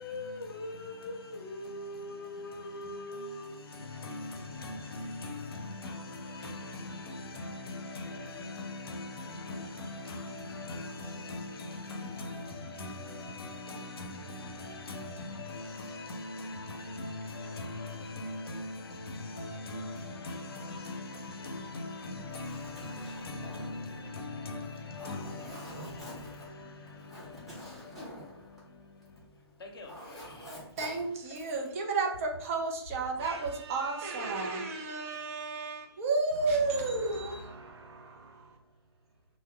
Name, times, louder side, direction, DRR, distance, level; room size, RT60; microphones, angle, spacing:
voice 1, 0.0-30.6, left 2 dB, 60° left, 0.7 m, -41 dB
Zipper (clothing), 22.2-29.3 29.6-31.7, equal, ahead, 0.8 m, -47 dB
voice 2, 30.8-37.4, right 3 dB, 30° right, 0.6 m, -32 dB
voice 3, 33.2-35.2 36.3-39.3, right 3 dB, 70° right, 0.7 m, -47 dB
2.6 x 2.2 x 3.5 m
figure-of-eight pair, 130°, 14 cm